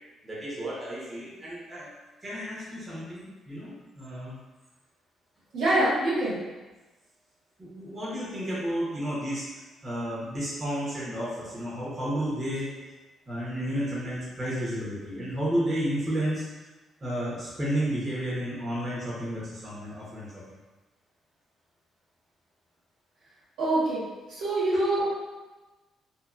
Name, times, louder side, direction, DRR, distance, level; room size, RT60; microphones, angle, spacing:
voice 1, 0.2-1.9 2.2-4.4 7.6-12.7 13.3-16.4 17.0-20.6, equal, 30° right, -7 dB, 0.9 m, -32 dB
voice 2, 5.5-6.3 23.6-24.0 24.3-25.1, right 1 dB, 85° right, -10 dB, 1.4 m, -25 dB
2.7 x 2.7 x 2.4 m, 1.2 s
cardioid pair, 90°, 0 cm